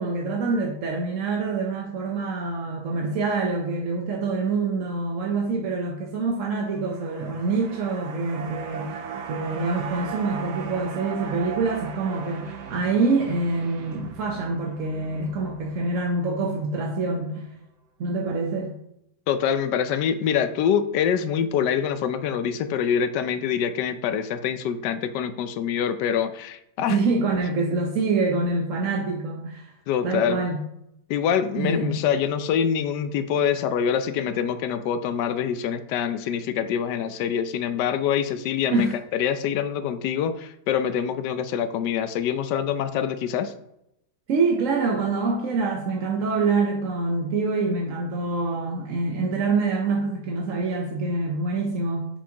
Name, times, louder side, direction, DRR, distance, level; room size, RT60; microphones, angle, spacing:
voice 1, 0.0-9.0 9.3-17.5 18.0-18.7 26.9-29.7 30.0-30.6 31.5-32.1 38.7-38.9 44.3-52.1, right 3 dB, 55° right, 1 dB, 1.1 m, -26 dB
sound 1, 6.7-17.1 17.4-17.5, right 7 dB, 85° right, 1.5 m, -38 dB
voice 2, 19.3-27.0 29.9-30.4 31.1-43.5, left 8 dB, 85° left, 11 dB, 1.2 m, -25 dB
7.2 x 7.2 x 2.9 m, 0.79 s
omnidirectional pair, 1.8 m